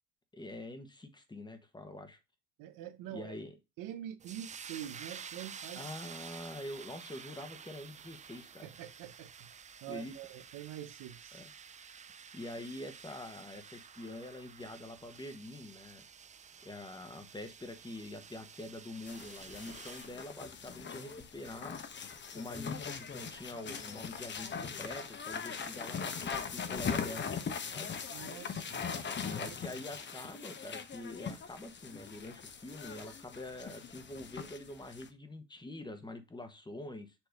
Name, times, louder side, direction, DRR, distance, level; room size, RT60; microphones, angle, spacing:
voice 1, 0.3-2.2 3.1-3.5 5.8-8.7 9.9-10.1 11.3-11.5 12.3-16.1 16.6-21.8 22.3-27.3 27.7-27.9 29.4-37.1, left 1 dB, 15° left, 1.2 m, -45 dB
voice 2, 2.6-3.3 3.8-5.9 8.6-11.4 28.1-28.9 29.3-29.8, right 11 dB, 70° right, 1.0 m, -46 dB
sound 1, 4.2-20.1, right 7 dB, 20° right, 0.4 m, -51 dB
sound 2, 19.1-35.1, left 6 dB, 35° left, 1.0 m, -41 dB
7.2 x 3.0 x 5.1 m
cardioid pair, 95°, 33 cm